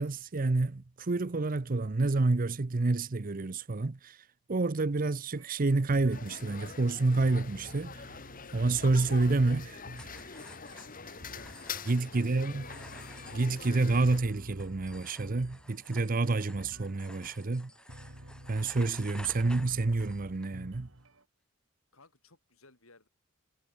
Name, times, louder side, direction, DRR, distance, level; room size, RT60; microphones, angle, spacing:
voice 1, 0.0-4.2 4.5-7.9 8.5-9.8 11.9-12.6 13.3-17.7 18.5-20.9, right 3 dB, 40° right, 0.7 m, -28 dB
sound 1, 5.3-21.2, right 1 dB, 65° right, 6.7 m, -51 dB
sound 2, 6.1-14.2, left 6 dB, 40° left, 1.8 m, -45 dB
sound 3, 9.9-20.5, left 1 dB, 5° left, 1.4 m, -53 dB
voice 2, 10.7-11.5 11.8-12.9 21.9-23.1, left 3 dB, 75° left, 6.1 m, -61 dB
head